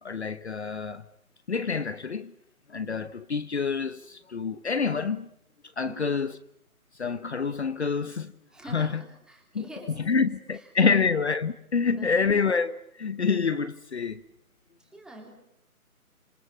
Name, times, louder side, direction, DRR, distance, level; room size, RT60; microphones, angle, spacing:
voice 1, 0.0-1.0 1.5-2.3 2.7-5.3 5.8-6.3 7.0-8.3 8.7-9.0 9.5-9.6 10.1-14.2, left 5 dB, 50° left, 1.1 m, -27 dB
voice 2, 5.8-6.1 8.5-11.1 11.8-12.4 14.8-15.3, right 1 dB, ahead, 3.1 m, -46 dB
28.5 x 27.0 x 7.3 m
figure-of-eight pair, 150°, 44 cm